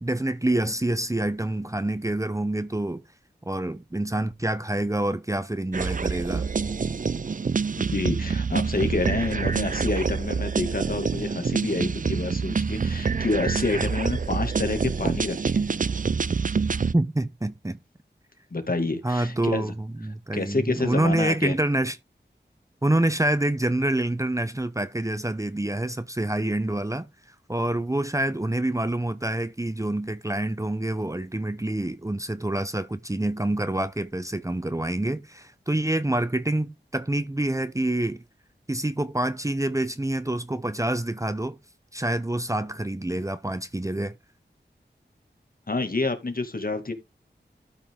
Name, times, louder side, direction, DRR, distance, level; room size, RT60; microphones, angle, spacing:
voice 1, 0.0-3.0 3.4-6.5 16.9-17.8 19.0-22.0 22.8-27.1 27.5-38.2 38.7-41.6 41.9-44.1, right 1 dB, 15° right, 0.8 m, -27 dB
sound 1, 5.7-16.9, right 5 dB, 45° right, 0.5 m, -26 dB
voice 2, 7.7-15.7 18.5-19.7 20.3-21.5 45.7-46.9, left 3 dB, 50° left, 2.2 m, -28 dB
13.0 x 5.4 x 3.7 m
wide cardioid pair, 60°, 18 cm